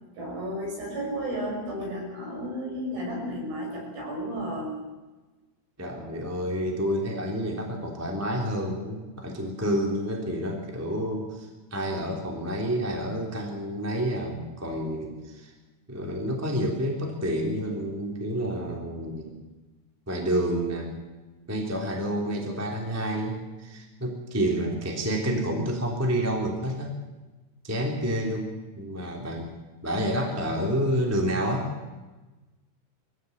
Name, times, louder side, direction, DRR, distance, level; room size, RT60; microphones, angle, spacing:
voice 1, 0.1-4.9 24.6-24.8, equal, 50° right, -1 dB, 7.4 m, -33 dB
voice 2, 5.8-15.5 15.9-19.5 20.1-20.9 21.5-26.9 27.6-29.5 29.8-31.7, equal, 5° right, 0 dB, 2.1 m, -29 dB
22.5 x 16.0 x 8.1 m, 1.2 s
omnidirectional pair, 5.4 m